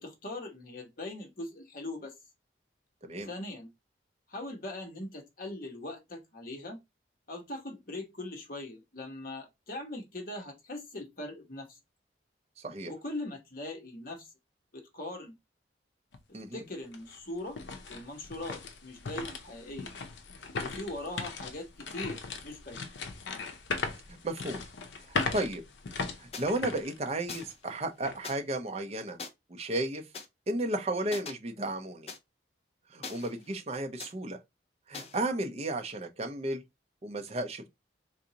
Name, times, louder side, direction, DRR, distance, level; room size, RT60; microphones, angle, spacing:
voice 1, 0.0-2.1 3.2-3.7 4.3-6.8 7.3-11.8 12.9-14.3 14.7-15.3 16.5-17.6 17.9-19.9 20.6-22.8, left 1 dB, 50° left, 1.0 m, -40 dB
sound 1, 16.1-16.2 16.7-27.6 28.0-28.2 28.8-29.1, left 4 dB, 75° left, 0.6 m, -38 dB
voice 2, 24.1-24.6 25.0-25.6 26.2-29.2 29.5-30.0 30.5-32.1 32.9-34.4 34.9-36.6 37.0-37.7, right 1 dB, 35° right, 0.6 m, -33 dB
sound 2, 26.3-26.5 27.3-27.6 28.2-28.3 29.2-29.3 30.1-30.2 31.1-31.3 32.1-32.2 33.0-33.6 34.0-34.1 34.9-35.2, left 5 dB, 35° left, 0.5 m, -42 dB
4.0 x 2.5 x 2.8 m
head